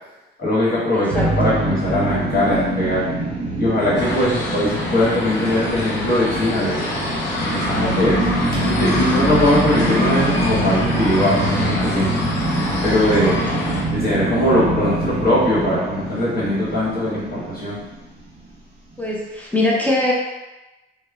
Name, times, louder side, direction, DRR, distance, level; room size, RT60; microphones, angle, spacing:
voice 1, 0.4-3.0 3.6-6.8 7.5-8.3 8.6-12.2 12.8-13.3 13.9-17.8, left 1 dB, 50° left, -8 dB, 1.4 m, -20 dB
voice 2, 0.9-1.3 13.0-13.3 19.0-20.1, left 2 dB, 10° left, -4 dB, 0.5 m, -22 dB
sound 1, 1.1-18.3, right 1 dB, 30° right, 1.0 m, -24 dB
sound 2, 4.0-13.8, left 2 dB, 65° left, 0.7 m, -26 dB
3.0 x 2.1 x 2.3 m, 1.0 s
cardioid pair, 90°, 20 cm